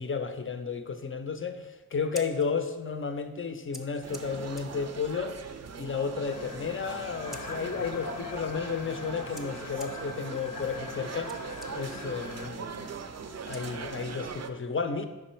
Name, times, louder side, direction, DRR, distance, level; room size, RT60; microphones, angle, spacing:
voice 1, 0.0-5.4 5.8-13.0 13.5-15.1, left 5 dB, 35° left, 8 dB, 0.6 m, -33 dB
Scissors, 1.9-14.3, equal, ahead, 0.7 m, -53 dB
sound 1, 4.0-14.5, right 5 dB, 45° right, 0.5 m, -41 dB
sound 2, 6.2-12.5, left 4 dB, 70° left, 0.7 m, -42 dB
5.4 x 4.9 x 4.4 m, 1.1 s
cardioid pair, 70°, 35 cm